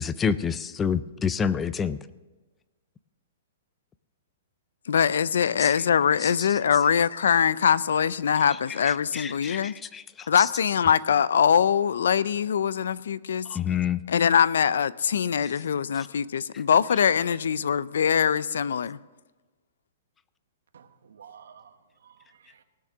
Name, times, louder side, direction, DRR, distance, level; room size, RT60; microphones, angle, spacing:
voice 1, 0.0-2.0 5.6-5.7 6.2-6.3 8.8-10.0 10.4-10.5 13.5-14.0 16.0-16.1, left 7 dB, 10° left, 0.3 m, -28 dB
voice 2, 4.9-9.7 10.3-13.5 14.1-19.0, left 7 dB, 80° left, 0.4 m, -23 dB
voice 3, 20.7-22.6, right 7 dB, 85° right, 1.1 m, -52 dB
18.5 x 6.5 x 6.0 m
hypercardioid pair, 165°, 0 cm